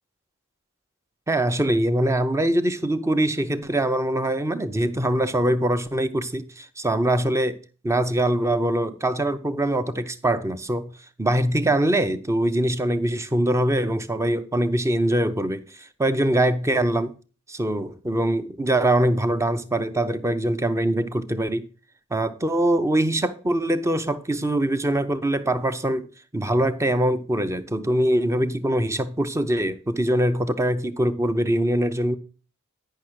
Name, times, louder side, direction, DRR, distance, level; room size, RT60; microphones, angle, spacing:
voice 1, 1.3-10.9 11.2-17.1 17.5-21.7 22.1-26.1 26.3-32.2, right 1 dB, 15° right, 0.6 m, -23 dB
10.0 x 5.7 x 6.2 m
head